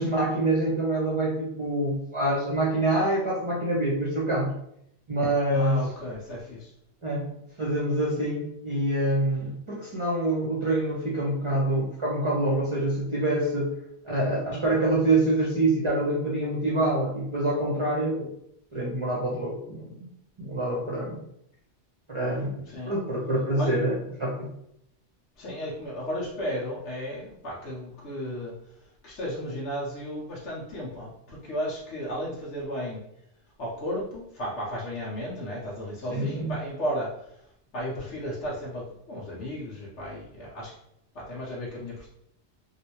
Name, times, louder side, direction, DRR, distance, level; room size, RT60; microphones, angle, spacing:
voice 1, 0.0-4.5 5.1-5.8 7.0-7.3 7.6-13.7 14.0-18.3 18.7-20.1 20.4-21.2 22.1-24.5 36.1-36.5, right 1 dB, 30° right, -5 dB, 0.7 m, -26 dB
voice 2, 5.5-6.7 22.7-23.0 23.5-23.7 25.4-28.5 29.0-33.0 33.6-37.4 37.7-40.7 41.1-42.1, equal, 90° left, -6 dB, 1.2 m, -34 dB
3.2 x 2.7 x 2.9 m, 0.75 s
omnidirectional pair, 1.2 m